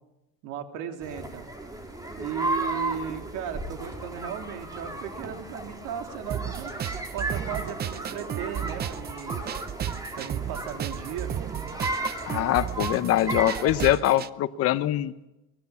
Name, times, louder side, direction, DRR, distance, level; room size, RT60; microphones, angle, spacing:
voice 1, 0.4-1.5 2.2-6.7 7.1-9.5 10.1-11.3, right 9 dB, 70° right, 5 dB, 3.4 m, -36 dB
sound 1, 1.0-14.0, right 1 dB, 10° right, 3.8 m, -35 dB
sound 2, 6.3-14.3, right 10 dB, 30° right, 0.7 m, -34 dB
voice 2, 12.3-15.1, left 13 dB, 50° left, 11 dB, 1.0 m, -23 dB
24.0 x 20.5 x 7.1 m, 0.97 s
cardioid pair, 145°, 32 cm